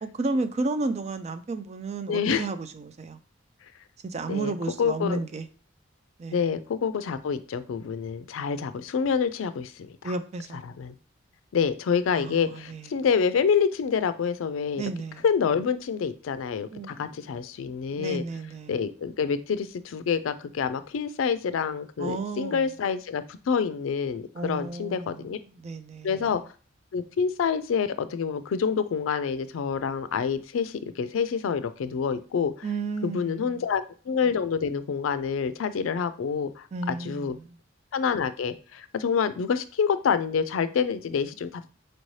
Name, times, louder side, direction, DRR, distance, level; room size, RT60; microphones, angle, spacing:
voice 1, 0.0-3.2 4.0-5.5 6.2-6.4 10.0-10.6 12.1-12.9 14.8-15.2 16.7-17.0 17.9-18.8 22.0-22.6 24.3-26.3 32.6-33.6 36.7-37.5, right 3 dB, 35° right, 0.3 m, -32 dB
voice 2, 2.1-2.5 4.3-4.5 4.8-5.2 6.3-10.1 10.8-10.9 11.5-14.8 15.2-18.2 18.7-25.4 26.0-26.4 26.9-32.5 33.0-37.4 37.9-41.6, left 6 dB, 90° left, 0.4 m, -27 dB
4.3 x 2.7 x 3.1 m
head